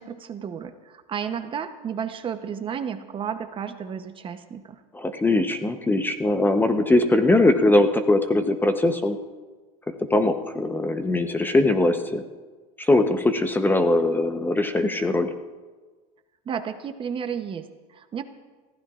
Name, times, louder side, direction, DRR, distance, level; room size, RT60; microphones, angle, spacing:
voice 1, 0.0-4.8 16.5-18.2, right 7 dB, 30° right, 9 dB, 0.8 m, -32 dB
voice 2, 4.9-9.2 9.9-12.2 12.8-15.3, left 2 dB, 10° left, 7 dB, 0.8 m, -21 dB
24.5 x 15.5 x 2.5 m, 1.4 s
supercardioid pair, 125°, 18 cm